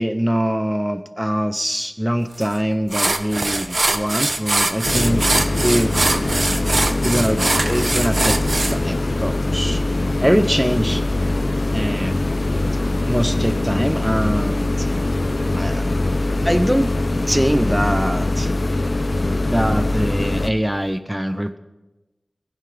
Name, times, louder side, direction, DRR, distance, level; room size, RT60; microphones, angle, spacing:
voice 1, 0.0-5.3 5.6-6.1 7.0-8.4 8.7-9.8 10.2-11.0 11.7-12.2 13.0-14.9 15.5-15.9 16.4-16.9 17.3-18.5 19.5-21.6, equal, 5° right, 10 dB, 0.8 m, -22 dB
sound 1, 2.4-2.5 2.9-8.8, right 2 dB, 60° right, 1.1 m, -22 dB
sound 2, 4.8-20.5, left 2 dB, 65° left, 0.8 m, -22 dB
16.0 x 15.5 x 5.1 m, 1.1 s
wide cardioid pair, 55°, 0 cm